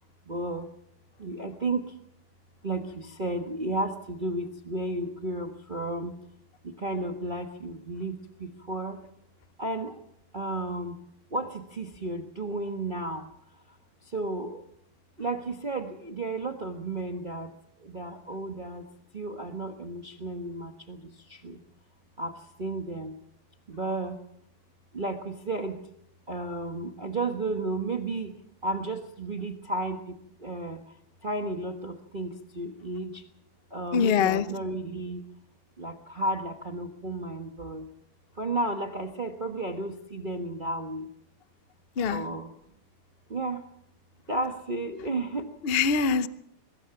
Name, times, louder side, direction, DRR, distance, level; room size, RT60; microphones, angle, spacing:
voice 1, 0.3-0.7 1.2-1.9 2.6-6.2 6.6-8.1 8.7-9.0 9.6-9.9 10.3-11.0 11.3-13.3 14.1-14.6 15.2-17.5 17.9-18.8 19.1-21.0 21.4-21.6 22.2-22.3 22.6-23.1 23.7-24.2 24.9-25.8 26.3-28.3 28.6-30.0 30.4-30.8 31.2-33.2 33.7-35.2 35.8-37.9 38.4-41.1 42.1-42.5 43.3-43.6 44.3-45.5, right 2 dB, 30° right, 4 dB, 1.2 m, -32 dB
voice 2, 33.9-34.4 42.0-42.2 45.6-46.3, left 6 dB, 65° left, 13 dB, 0.5 m, -23 dB
23.0 x 21.5 x 5.8 m, 0.73 s
omnidirectional pair, 2.3 m